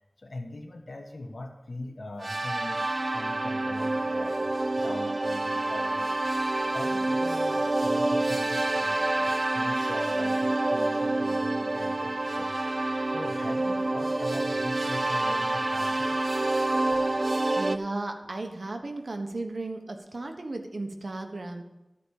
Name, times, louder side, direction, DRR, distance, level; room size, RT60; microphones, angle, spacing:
voice 1, 0.2-2.8 3.1-6.2 6.6-12.5 13.1-16.1 16.9-17.0, left 2 dB, 75° left, 4 dB, 1.3 m, -41 dB
sound 1, 2.2-17.8, right 2 dB, 50° right, 0.5 m, -27 dB
voice 2, 17.6-21.6, right 2 dB, 75° right, 4 dB, 1.2 m, -35 dB
13.0 x 5.2 x 6.5 m, 0.96 s
wide cardioid pair, 55°, 0 cm